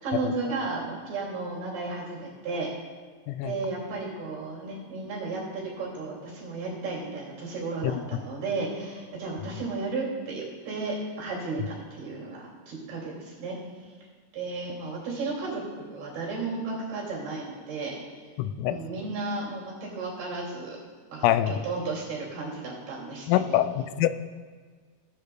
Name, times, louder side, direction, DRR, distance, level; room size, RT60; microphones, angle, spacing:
voice 1, 0.0-2.7 3.4-13.6 14.3-18.0 18.7-20.8 21.1-23.6, right 3 dB, 55° right, -4 dB, 4.0 m, -34 dB
voice 2, 18.4-18.8 21.2-21.5 23.3-24.1, left 13 dB, 90° left, 11 dB, 3.1 m, -24 dB
17.5 x 11.5 x 2.3 m, 1.5 s
omnidirectional pair, 5.7 m